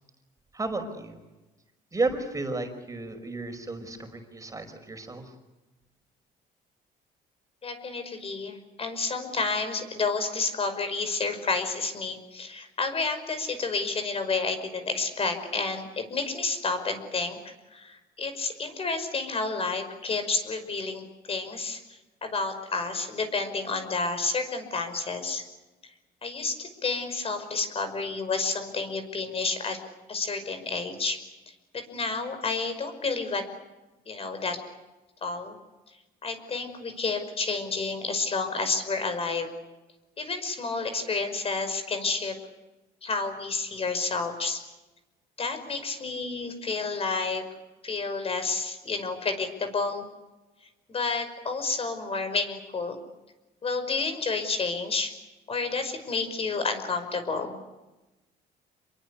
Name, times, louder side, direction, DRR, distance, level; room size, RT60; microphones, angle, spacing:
voice 1, 0.5-1.2 1.9-5.2, right 3 dB, 20° right, 5 dB, 5.3 m, -32 dB
voice 2, 7.6-17.4 17.7-21.8 22.2-25.4 26.2-29.8 30.1-31.2 31.7-33.4 34.1-34.6 35.2-35.5 36.2-39.5 40.2-42.3 43.0-44.6 45.4-47.4 47.8-50.0 50.9-53.0 53.6-55.1 55.5-57.6, left 4 dB, 35° left, 8 dB, 5.5 m, -30 dB
28.5 x 23.0 x 8.4 m, 1.1 s
cardioid pair, 110°, 17 cm